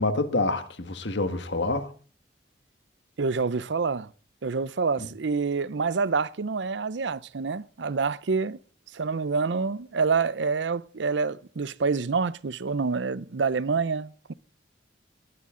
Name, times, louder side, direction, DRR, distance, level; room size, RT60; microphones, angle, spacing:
voice 1, 0.0-1.9, left 2 dB, 70° left, 1.6 m, -27 dB
voice 2, 3.2-4.1 4.4-8.6 8.9-14.3, right 4 dB, 70° right, 0.6 m, -27 dB
19.0 x 11.5 x 3.8 m
head